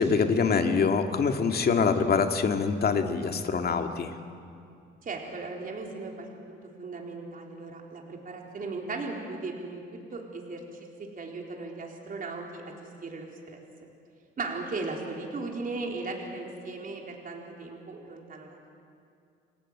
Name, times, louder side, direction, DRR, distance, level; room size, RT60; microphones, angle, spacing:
voice 1, 0.0-4.2, left 5 dB, 50° left, 5 dB, 2.1 m, -25 dB
voice 2, 5.0-9.8 10.1-10.9 11.2-12.7 13.0-13.9 14.4-18.7, right 3 dB, 45° right, 0 dB, 4.1 m, -37 dB
28.0 x 18.0 x 9.0 m, 2.4 s
cardioid pair, 90°, 20 cm